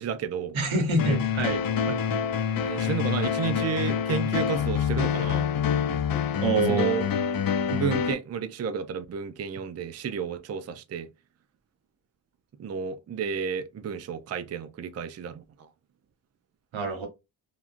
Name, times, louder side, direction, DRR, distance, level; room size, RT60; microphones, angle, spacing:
voice 1, 0.0-0.6 1.9-2.0 2.7-5.5 6.5-7.0 7.7-11.1 12.6-15.7, right 7 dB, 35° right, 0.4 m, -31 dB
voice 2, 0.5-1.6 6.4-7.1 16.7-17.1, right 2 dB, 85° right, 1.2 m, -26 dB
sound 1, 1.0-8.1, left 7 dB, 50° left, 0.5 m, -26 dB
2.8 x 2.4 x 2.5 m
cardioid pair, 60°, 46 cm